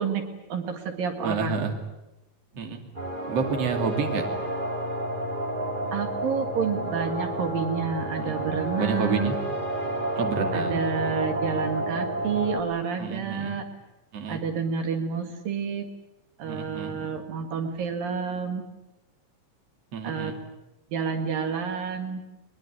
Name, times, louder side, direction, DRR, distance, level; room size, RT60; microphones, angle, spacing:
voice 1, 0.0-1.8 5.9-9.3 10.5-13.7 14.3-15.9 16.4-18.6 20.0-20.3 20.9-22.2, right 6 dB, 75° right, 6 dB, 3.6 m, -29 dB
voice 2, 1.2-1.8 2.5-2.9 3.3-4.2 8.2-8.4 8.8-9.4 10.2-10.9 13.0-13.5 14.1-14.4 16.4-17.1 19.9-20.4, right 4 dB, 45° right, 4 dB, 3.5 m, -29 dB
sound 1, 2.9-12.6, right 1 dB, 15° right, 2.9 m, -30 dB
22.5 x 22.0 x 9.8 m, 0.96 s
omnidirectional pair, 4.1 m